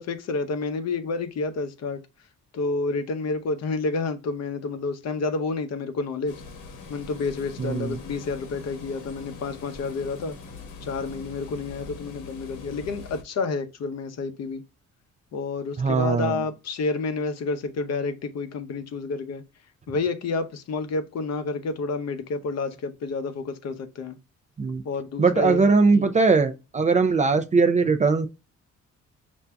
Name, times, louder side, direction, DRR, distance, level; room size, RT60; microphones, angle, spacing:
voice 1, 0.0-2.0 2.5-6.4 6.9-10.4 10.8-14.6 15.3-19.4 19.9-24.2 24.8-25.7 25.9-26.2, left 3 dB, 60° left, 0.7 m, -29 dB
sound 1, 6.3-13.2, left 4 dB, 80° left, 0.9 m, -42 dB
voice 2, 7.6-8.0 15.8-16.4 24.6-24.8 25.2-28.3, right 4 dB, 25° right, 0.3 m, -20 dB
5.6 x 2.6 x 2.2 m
cardioid pair, 90°, 30 cm